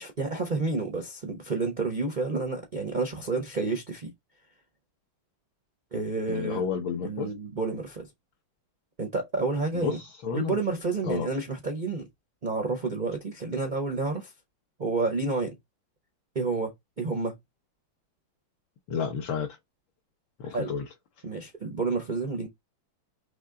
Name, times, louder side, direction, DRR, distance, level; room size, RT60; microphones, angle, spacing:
voice 1, 0.0-4.1 5.9-6.6 7.0-8.1 9.0-10.0 10.3-12.0 12.4-14.3 14.8-15.5 16.3-16.7 17.0-17.4 20.5-20.8 21.2-22.5, right 3 dB, 85° right, 0.4 m, -30 dB
voice 2, 6.3-7.3 9.7-10.6 11.0-11.3 18.9-19.5 20.4-20.9, left 6 dB, 70° left, 1.4 m, -31 dB
4.2 x 3.2 x 3.7 m
omnidirectional pair, 2.3 m